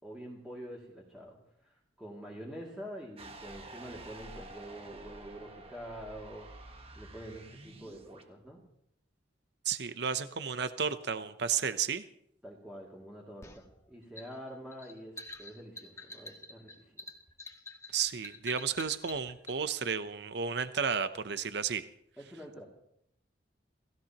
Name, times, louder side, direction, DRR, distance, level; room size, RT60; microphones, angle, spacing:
voice 1, 0.0-6.5 7.0-8.6 12.4-17.0 22.2-22.6, equal, 5° right, -3 dB, 2.5 m, -46 dB
sound 1, 3.2-8.3, right 2 dB, 30° right, 1.4 m, -49 dB
voice 2, 9.6-12.0 17.9-21.8, right 6 dB, 65° right, 11 dB, 0.7 m, -32 dB
sound 2, 13.4-19.6, left 3 dB, 15° left, 1.3 m, -47 dB
29.5 x 16.0 x 3.0 m, 0.73 s
head